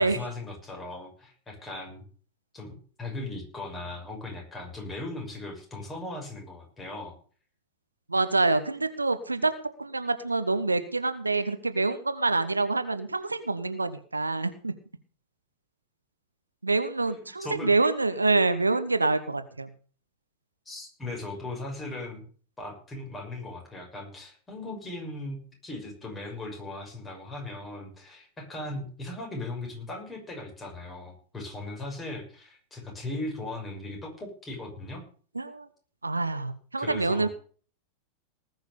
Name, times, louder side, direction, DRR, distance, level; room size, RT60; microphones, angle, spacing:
voice 1, 0.0-2.0 2.5-7.1 17.1-17.7 20.6-22.2 22.6-35.0 36.8-37.3, left 2 dB, 15° left, 1 dB, 6.3 m, -38 dB
voice 2, 8.1-9.5 9.8-14.7 16.6-19.7 35.3-35.7 36.0-37.3, right 3 dB, 80° right, 11 dB, 1.1 m, -26 dB
19.0 x 6.4 x 6.8 m, 0.42 s
figure-of-eight pair, 90°, 0 cm